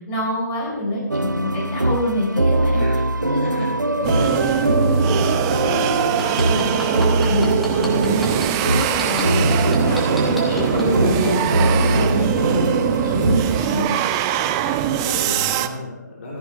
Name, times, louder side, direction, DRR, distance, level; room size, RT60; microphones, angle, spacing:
voice 1, 0.1-4.1 5.0-5.1 5.5-8.4 8.6-13.9, left 1 dB, 20° left, -3 dB, 4.6 m, -26 dB
voice 2, 0.6-1.0 2.7-4.8 14.8-16.4, left 2 dB, 45° left, -5 dB, 3.2 m, -33 dB
sound 1, 1.1-13.8, right 1 dB, 85° right, 0.7 m, -22 dB
sound 2, 4.0-15.7, right 10 dB, 15° right, 0.4 m, -22 dB
sound 3, 6.0-9.2 9.7-10.9 11.4-11.5, equal, ahead, 1.1 m, -31 dB
14.5 x 13.5 x 3.3 m, 0.98 s
figure-of-eight pair, 140°, 10 cm